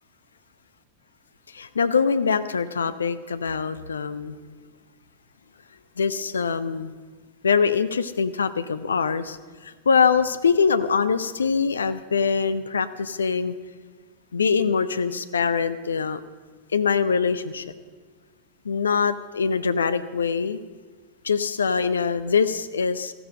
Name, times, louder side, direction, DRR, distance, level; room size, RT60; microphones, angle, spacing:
voice 1, 1.5-4.3 6.0-6.9 7.4-9.4 9.6-13.5 14.3-16.2 16.7-17.6 18.6-20.6 21.2-23.1, left 5 dB, 70° left, 13 dB, 0.6 m, -23 dB
14.5 x 12.0 x 6.2 m, 1.4 s
figure-of-eight pair, 90°, 0 cm